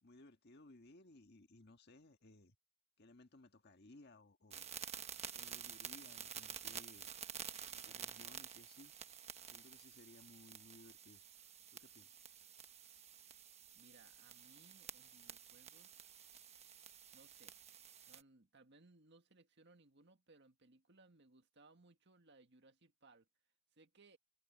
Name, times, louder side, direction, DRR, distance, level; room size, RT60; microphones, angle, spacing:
voice 1, 0.0-2.6 3.0-4.7 5.3-7.1 7.7-8.9 9.4-11.2 11.7-12.2, left 2 dB, 55° left, 1.6 m, -61 dB
sound 1, 4.5-18.2, right 8 dB, 30° right, 1.2 m, -51 dB
voice 2, 13.8-16.1 17.1-17.5 18.1-23.3 23.7-24.2, right 3 dB, 60° right, 1.8 m, -66 dB
head